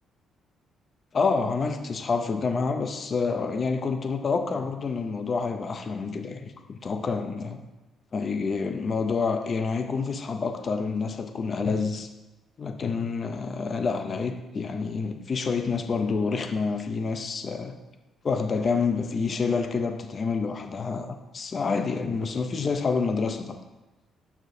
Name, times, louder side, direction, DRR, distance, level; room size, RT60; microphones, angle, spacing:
voice 1, 1.1-7.6 8.1-12.1 12.6-17.8 18.2-23.6, left 4 dB, 30° left, 6 dB, 0.5 m, -28 dB
12.5 x 4.4 x 2.6 m, 1.1 s
cardioid pair, 170°, 0 cm